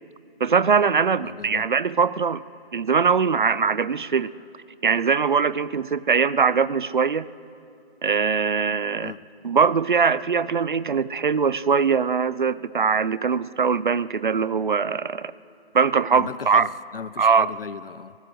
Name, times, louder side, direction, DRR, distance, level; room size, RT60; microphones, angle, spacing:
voice 1, 0.4-2.4 2.7-4.3 4.8-7.3 8.0-9.1 9.4-15.3 15.7-16.7 17.2-17.5, right 6 dB, 50° right, 18 dB, 0.6 m, -21 dB
voice 2, 1.2-1.7 9.0-9.2 16.1-18.2, left 6 dB, 65° left, 19 dB, 0.7 m, -36 dB
23.0 x 15.0 x 7.8 m, 2.5 s
hypercardioid pair, 165°, 31 cm